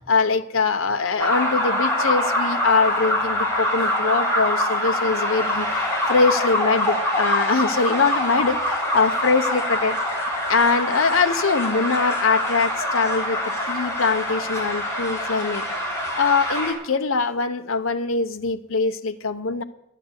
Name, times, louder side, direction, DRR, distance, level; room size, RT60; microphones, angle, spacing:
voice 1, 0.1-10.0 10.5-13.4 13.7-15.6 16.2-19.6, left 4 dB, 70° left, 8 dB, 0.8 m, -22 dB
sound 1, 1.2-16.7, left 1 dB, 15° left, 3.4 m, -24 dB
12.5 x 9.4 x 8.1 m, 0.87 s
head